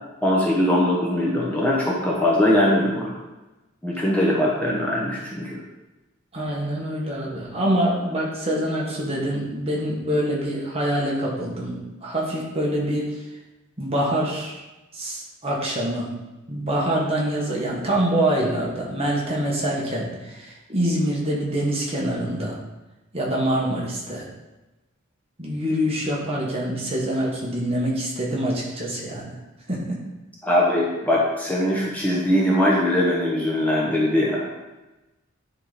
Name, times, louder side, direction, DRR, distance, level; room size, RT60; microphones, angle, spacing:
voice 1, 0.2-3.2 3.8-5.6 30.4-34.5, left 1 dB, 5° left, -5 dB, 1.0 m, -21 dB
voice 2, 6.3-13.1 13.8-14.5 14.9-16.1 16.5-22.6 23.1-24.3 25.4-29.3 29.7-30.0, right 1 dB, 30° right, -4 dB, 1.5 m, -25 dB
9.7 x 3.7 x 4.1 m, 1.1 s
head